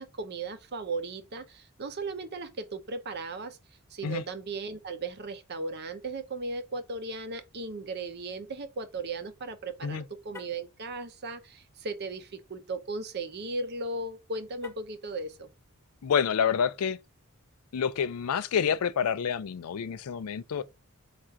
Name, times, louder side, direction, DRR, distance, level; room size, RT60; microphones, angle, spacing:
voice 1, 0.0-3.6 3.9-15.5, right 3 dB, 50° right, 0.6 m, -36 dB
Car, 10.2-10.7 14.5-15.1, left 5 dB, 10° left, 0.5 m, -48 dB
voice 2, 16.0-17.0 17.7-20.6, left 7 dB, 80° left, 0.4 m, -28 dB
3.6 x 2.5 x 4.4 m
head